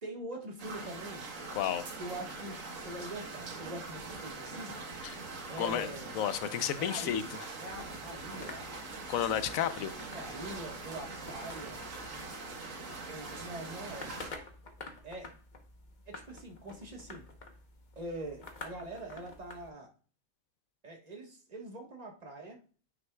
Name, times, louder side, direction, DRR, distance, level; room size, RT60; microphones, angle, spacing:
voice 1, 0.0-1.3 2.0-4.8 5.5-6.1 6.8-7.3 7.6-8.9 10.1-11.8 13.0-14.1 15.0-15.3 16.1-17.3 17.9-19.9 20.8-22.6, right 1 dB, 30° right, 1.4 m, -44 dB
sound 1, 0.6-14.3, right 3 dB, 70° right, 1.7 m, -43 dB
voice 2, 5.6-7.2 9.1-9.9, left 10 dB, 80° left, 1.0 m, -32 dB
sound 2, 7.7-19.7, left 3 dB, 40° left, 1.0 m, -50 dB
9.4 x 6.2 x 2.3 m
omnidirectional pair, 1.4 m